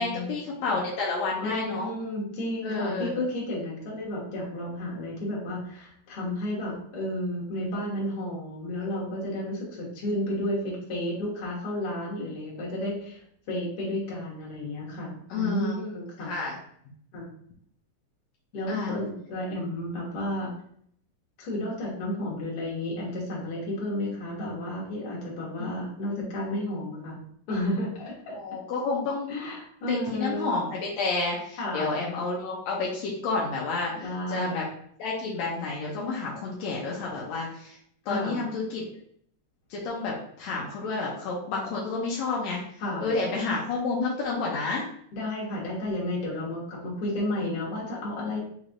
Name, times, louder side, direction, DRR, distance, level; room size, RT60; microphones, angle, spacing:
voice 1, 0.0-1.9 2.6-3.2 15.3-15.7 16.3-16.6 18.7-18.9 25.6-26.2 28.4-29.3 29.9-33.9 34.3-34.6 35.0-37.8 38.1-38.8 39.7-42.6 43.0-44.8, left 3 dB, 80° left, -3 dB, 1.5 m, -30 dB
voice 2, 1.4-16.4 17.1-17.3 18.5-20.5 21.4-27.2 27.5-28.3 29.3-30.5 31.6-32.0 34.0-34.7 38.1-38.4 42.8-43.1 45.1-48.4, left 1 dB, 55° left, -4 dB, 1.8 m, -32 dB
5.2 x 3.2 x 2.5 m, 0.65 s
omnidirectional pair, 3.9 m